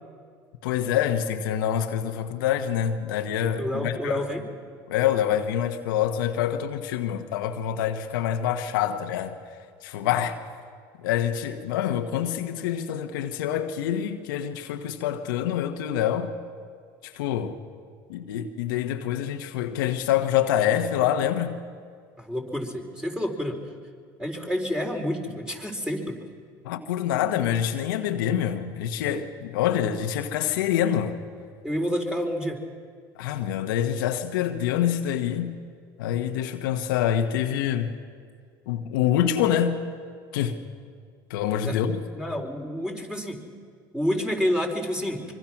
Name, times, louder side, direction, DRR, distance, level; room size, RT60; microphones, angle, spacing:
voice 1, 0.6-4.2 4.9-9.4 9.8-10.4 11.0-16.3 17.0-17.6 18.1-21.6 26.6-31.2 33.2-35.6 36.0-37.9 38.7-39.8 40.3-40.6 41.3-42.0, left 10 dB, 80° left, 1.4 m, -26 dB
voice 2, 3.6-4.4 22.2-23.6 24.2-26.2 31.6-32.6 41.6-41.8 42.1-43.4 43.9-45.3, equal, 5° right, 4.4 m, -29 dB
25.0 x 24.0 x 6.1 m
hypercardioid pair, 80°, 11 cm